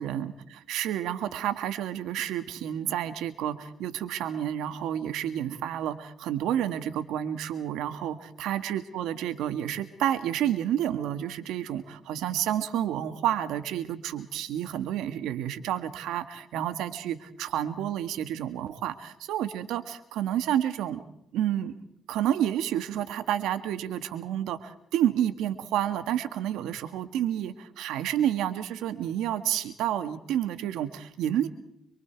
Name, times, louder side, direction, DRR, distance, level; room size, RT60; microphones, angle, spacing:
voice 1, 0.0-21.0 21.3-31.5, right 11 dB, 90° right, 10 dB, 1.7 m, -30 dB
27.0 x 24.5 x 4.7 m, 0.76 s
cardioid pair, 90°, 0 cm